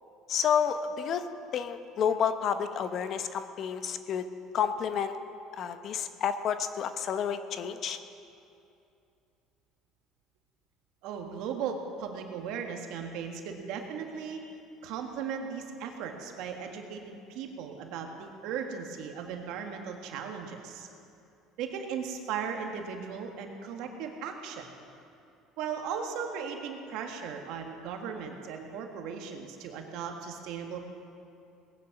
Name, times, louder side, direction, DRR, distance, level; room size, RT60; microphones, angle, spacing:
voice 1, 0.3-1.2 1.5-4.2 4.5-5.2 5.5-8.0, left 8 dB, 50° left, 10 dB, 0.9 m, -30 dB
voice 2, 11.0-14.4 14.8-20.9 21.6-24.7 25.6-30.8, right 6 dB, 70° right, 3 dB, 1.7 m, -37 dB
19.0 x 9.5 x 6.0 m, 2.6 s
supercardioid pair, 105°, 0 cm